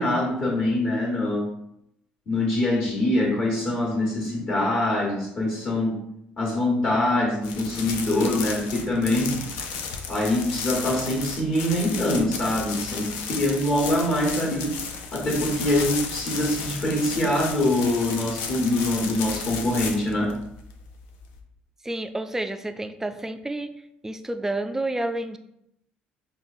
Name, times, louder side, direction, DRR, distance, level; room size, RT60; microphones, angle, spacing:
voice 1, 0.0-1.5 2.3-5.9 6.4-9.3 10.1-14.7 15.1-20.3, left 1 dB, 45° left, -5 dB, 1.2 m, -24 dB
sound 1, 7.4-21.4, left 5 dB, 65° left, 0.4 m, -34 dB
voice 2, 21.8-23.7 24.0-25.4, right 1 dB, 10° right, 9 dB, 0.3 m, -29 dB
5.2 x 2.3 x 2.5 m, 0.78 s
figure-of-eight pair, 55°, 5 cm